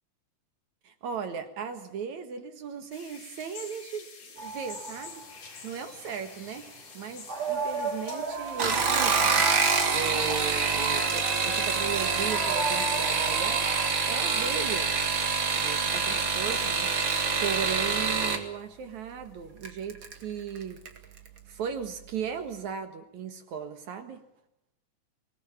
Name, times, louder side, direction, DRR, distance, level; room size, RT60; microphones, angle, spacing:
voice 1, 0.8-4.1 4.3-5.2 5.6-6.7 6.9-9.4 9.9-14.9 15.6-20.8 21.5-24.2, right 6 dB, 70° right, 8 dB, 2.8 m, -37 dB
sound 1, 2.9-12.0, left 5 dB, 65° left, 4.8 m, -48 dB
sound 2, 4.4-5.9 6.2-6.8 7.2-13.9, right 4 dB, 85° right, 5.8 m, -35 dB
sound 3, 8.5-18.4 19.6-20.1 20.6-21.0 21.3-21.4, right 5 dB, 40° right, 2.5 m, -26 dB
24.0 x 19.5 x 7.3 m, 0.80 s
omnidirectional pair, 3.6 m